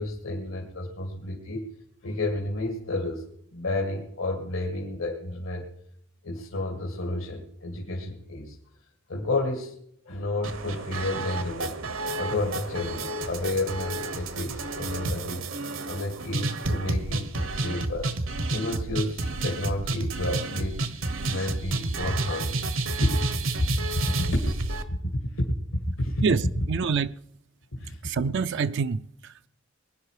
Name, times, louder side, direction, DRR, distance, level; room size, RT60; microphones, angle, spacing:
voice 1, 0.0-1.7 2.0-5.7 6.2-8.6 9.1-9.8 10.1-15.4 15.8-18.1 18.5-22.6 23.0-23.2 23.6-23.7 23.9-24.5 24.9-26.2 27.8-28.0, left 1 dB, 85° left, 2.1 m, -30 dB
sound 1, 10.4-24.8, right 2 dB, 75° right, 1.3 m, -31 dB
voice 2, 26.2-27.1 28.0-29.5, right 5 dB, 60° right, 0.4 m, -27 dB
21.0 x 11.0 x 4.9 m
head